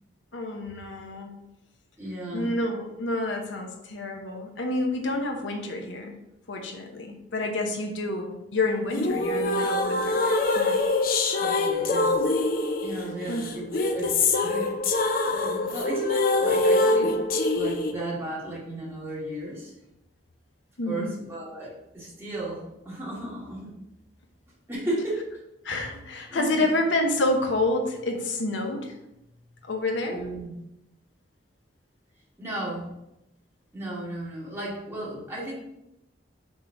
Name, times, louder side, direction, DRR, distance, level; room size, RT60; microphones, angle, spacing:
voice 1, 0.3-1.3 2.3-6.1 6.5-10.2 10.5-10.7 13.2-13.4 20.8-21.1 25.0-25.1 25.6-28.9 29.7-30.2, left 2 dB, 75° left, 3 dB, 0.9 m, -28 dB
voice 2, 2.0-2.6 11.4-12.2 12.8-14.8 15.2-17.2 17.5-19.7 20.9-23.7 24.7-25.3 26.3-26.6 30.1-30.5 32.4-32.9 33.7-35.5, right 1 dB, 15° right, -7 dB, 2.3 m, -34 dB
sound 1, 8.9-17.9, left 2 dB, 50° left, 0.6 m, -24 dB
6.3 x 3.8 x 4.7 m, 0.87 s
head